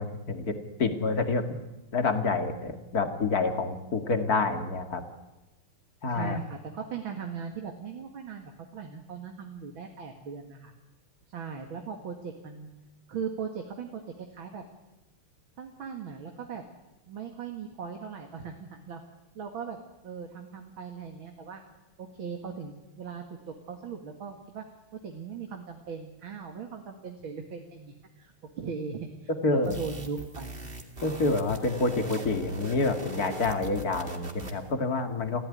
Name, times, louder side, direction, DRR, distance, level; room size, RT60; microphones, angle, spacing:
voice 1, 0.0-1.6 1.9-5.0 6.0-6.4 29.3-29.8 31.0-35.4, left 3 dB, 45° left, 6 dB, 2.6 m, -28 dB
voice 2, 6.1-10.7 11.3-12.7 13.1-14.6 15.6-16.6 17.1-19.0 19.3-19.8 20.0-21.6 22.0-24.6 24.9-30.6, right 6 dB, 65° right, 3 dB, 2.8 m, -39 dB
sound 1, 29.6-34.7, right 2 dB, 25° right, 2.4 m, -42 dB
29.0 x 15.5 x 9.9 m, 1.0 s
omnidirectional pair, 2.4 m